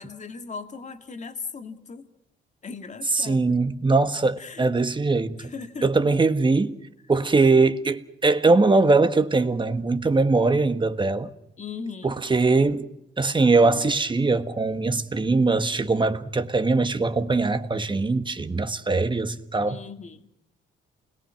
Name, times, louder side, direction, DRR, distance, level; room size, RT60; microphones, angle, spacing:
voice 1, 0.0-2.1 2.6-3.6 4.4-4.7 5.4-5.9 11.6-12.1 19.7-20.3, left 5 dB, 35° left, 2.2 m, -38 dB
voice 2, 3.1-5.5 5.8-6.8 7.1-11.3 12.0-12.9 13.2-19.8, right 3 dB, 25° right, 1.6 m, -21 dB
28.5 x 21.5 x 6.0 m
cardioid pair, 90°, 20 cm